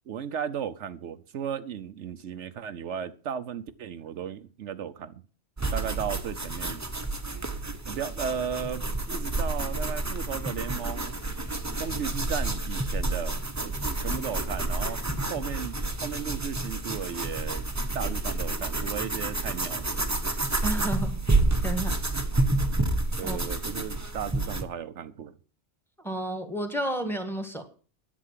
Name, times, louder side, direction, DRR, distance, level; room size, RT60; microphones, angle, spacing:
voice 1, 0.1-5.2 5.7-6.8 7.8-11.2 11.7-15.0 15.3-17.7 17.9-20.0 23.2-25.3, right 8 dB, 75° right, 1.0 m, -35 dB
sound 1, 5.6-24.6, right 2 dB, 15° right, 0.9 m, -29 dB
voice 2, 20.6-21.2 21.6-22.0 22.3-22.4 23.2-23.4 26.0-27.6, right 1 dB, ahead, 1.6 m, -31 dB
10.0 x 8.6 x 7.5 m
omnidirectional pair, 1.2 m